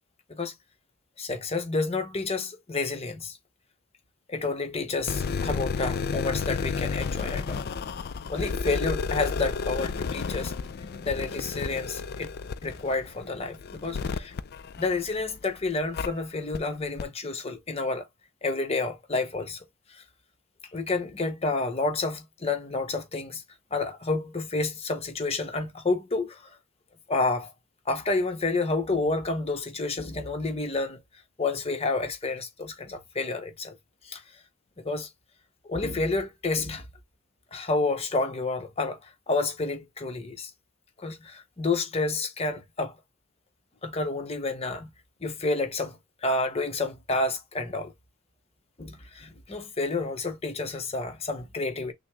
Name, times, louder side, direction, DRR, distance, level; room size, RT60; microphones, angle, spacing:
voice 1, 1.2-3.4 4.3-7.6 8.3-10.5 11.0-12.3 12.6-14.3 14.8-18.0 18.4-19.6 19.9-20.0 20.7-23.4 23.7-26.5 27.1-27.5 27.9-31.0 31.4-33.8 34.0-34.2 34.8-35.1 35.6-36.8 37.5-40.5 41.0-43.0 43.8-44.9 45.2-47.9 48.8-51.9, left 3 dB, 30° left, 0.9 m, -29 dB
sound 1, 5.0-15.4 15.9-16.1 16.5-16.6 17.0-17.1, left 5 dB, 50° left, 0.4 m, -32 dB
6.2 x 2.1 x 3.3 m
head